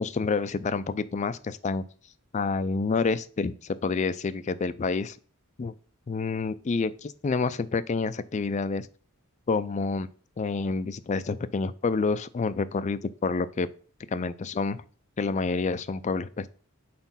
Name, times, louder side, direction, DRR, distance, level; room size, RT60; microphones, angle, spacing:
voice 1, 0.0-1.8 2.3-5.2 5.6-5.7 6.1-8.9 9.5-10.1 10.4-13.7 14.1-14.8 15.2-16.5, left 4 dB, 35° left, 13 dB, 0.3 m, -28 dB
4.3 x 4.0 x 5.6 m, 0.42 s
head